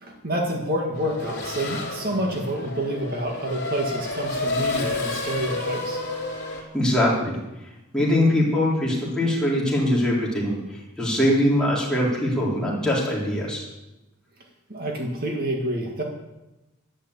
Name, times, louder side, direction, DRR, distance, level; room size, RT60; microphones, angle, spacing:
voice 1, 0.0-6.0 14.7-16.0, right 1 dB, 45° right, 1 dB, 2.0 m, -28 dB
Race car auto racing / Accelerating revving vroom, 0.9-6.6, left 2 dB, 50° left, 3.4 m, -30 dB
voice 2, 6.7-7.4 7.9-13.7, left 1 dB, 5° left, -6 dB, 4.0 m, -22 dB
11.5 x 11.0 x 8.3 m, 0.98 s
head